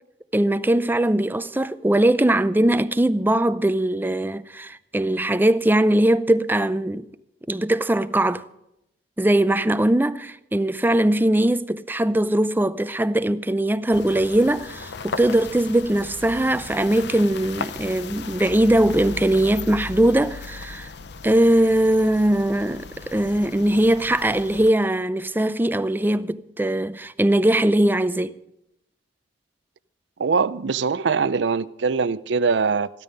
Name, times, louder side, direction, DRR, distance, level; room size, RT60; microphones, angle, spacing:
voice 1, 0.3-7.1 7.5-8.4 9.2-20.9 21.2-28.4, right 1 dB, 10° right, 0.5 m, -20 dB
sound 1, 13.9-24.7, left 4 dB, 65° left, 0.7 m, -37 dB
voice 2, 30.2-32.9, right 5 dB, 75° right, 0.5 m, -22 dB
14.5 x 12.5 x 5.3 m
head